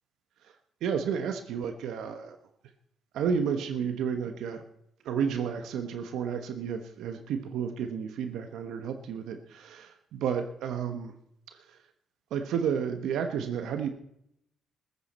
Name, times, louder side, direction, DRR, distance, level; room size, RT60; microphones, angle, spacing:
voice 1, 0.8-2.4 3.1-4.6 5.0-11.1 11.5-11.6 12.3-13.9, right 7 dB, 85° right, 7 dB, 1.2 m, -31 dB
15.5 x 14.0 x 4.3 m, 0.75 s
cardioid pair, 90°, 0 cm